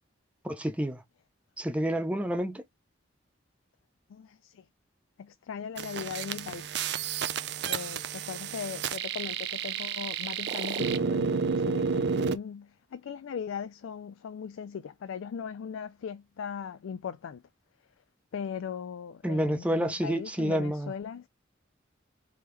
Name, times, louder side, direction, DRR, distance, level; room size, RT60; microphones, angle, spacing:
voice 1, 0.4-1.0 1.6-2.6 19.2-20.9, equal, 5° right, 0.6 m, -29 dB
voice 2, 4.1-4.6 5.2-6.8 7.7-17.4 18.3-21.3, left 7 dB, 85° left, 0.3 m, -39 dB
sound 1, 5.8-12.4, right 6 dB, 55° right, 0.4 m, -31 dB
3.5 x 3.0 x 3.2 m
head